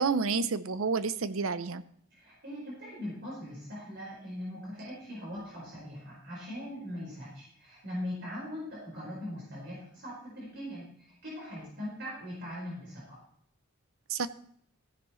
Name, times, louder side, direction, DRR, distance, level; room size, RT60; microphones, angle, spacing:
voice 1, 0.0-1.8 14.1-14.3, right 5 dB, 85° right, 14 dB, 0.7 m, -29 dB
voice 2, 2.1-13.2, left 1 dB, 55° right, -5 dB, 4.6 m, -41 dB
15.5 x 10.5 x 3.2 m, 0.66 s
head